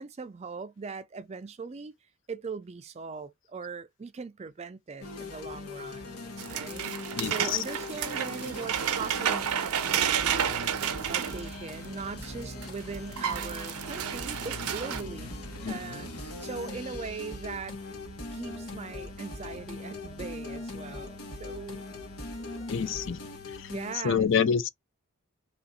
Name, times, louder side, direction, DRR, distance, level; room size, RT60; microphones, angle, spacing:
voice 1, 0.0-2.0 2.3-6.2 6.5-15.4 15.7-17.8 18.3-21.9 23.7-24.3, right 4 dB, 30° right, 0.3 m, -40 dB
sound 1, 5.0-24.0, left 3 dB, 85° left, 1.2 m, -41 dB
sound 2, 6.4-12.3 12.6-12.7 12.9-15.0, right 9 dB, 85° right, 0.6 m, -31 dB
voice 2, 7.2-7.6 15.6-15.7 22.7-23.2 23.6-23.7 24.0-24.7, left 7 dB, 55° left, 0.4 m, -26 dB
sound 3, 9.9-23.3, right 1 dB, 20° left, 1.2 m, -47 dB
3.0 x 2.5 x 4.0 m
head